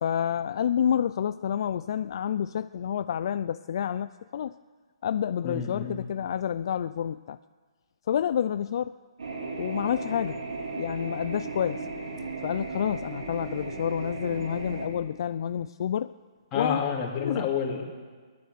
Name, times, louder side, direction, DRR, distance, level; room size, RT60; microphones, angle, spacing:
voice 1, 0.0-4.6 5.0-7.4 8.1-9.0 9.6-10.4 10.8-11.9 12.4-16.1 16.5-16.8 17.2-17.5, left 9 dB, 55° left, 13 dB, 0.3 m, -29 dB
voice 2, 5.4-6.0 16.5-17.8, left 6 dB, 20° left, -3 dB, 2.9 m, -29 dB
sound 1, 9.2-14.9, right 3 dB, 80° right, 3.5 m, -36 dB
16.0 x 11.5 x 6.8 m, 1.5 s
hypercardioid pair, 145°, 3 cm